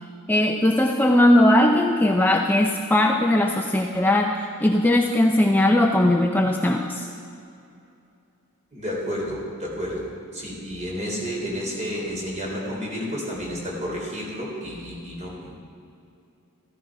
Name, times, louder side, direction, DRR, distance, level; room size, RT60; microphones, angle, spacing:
voice 1, 0.3-7.1, left 1 dB, 10° left, 2 dB, 0.5 m, -19 dB
voice 2, 8.7-15.5, equal, 30° right, -2 dB, 3.5 m, -31 dB
15.0 x 13.5 x 4.8 m, 2.6 s
head